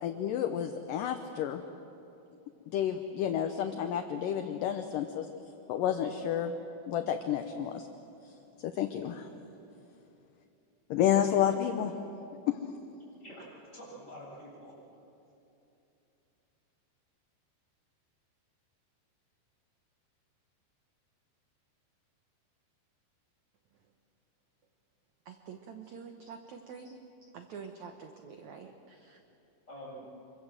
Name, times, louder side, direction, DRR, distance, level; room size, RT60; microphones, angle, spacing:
voice 1, 0.0-1.6 2.7-5.3 5.7-6.5 6.9-7.9 8.6-9.3 10.9-11.9 12.5-12.6, left 10 dB, 75° left, 7 dB, 2.0 m, -30 dB
voice 2, 13.2-14.7 29.7-30.1, equal, 15° left, -5 dB, 7.7 m, -47 dB
voice 3, 25.2-29.2, right 6 dB, 75° right, 5 dB, 1.7 m, -47 dB
26.5 x 24.0 x 7.6 m, 2.8 s
omnidirectional pair, 4.9 m